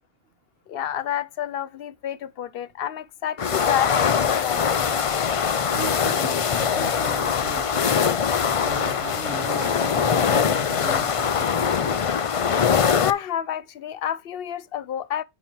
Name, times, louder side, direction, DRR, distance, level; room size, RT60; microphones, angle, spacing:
voice 1, 0.7-4.9 13.0-15.2, left 10 dB, 60° left, 0.8 m, -29 dB
sound 1, 3.4-13.1, left 7 dB, 45° left, 0.4 m, -22 dB
voice 2, 5.7-12.2, right 3 dB, 60° right, 1.5 m, -37 dB
9.1 x 4.5 x 4.5 m
omnidirectional pair, 1.2 m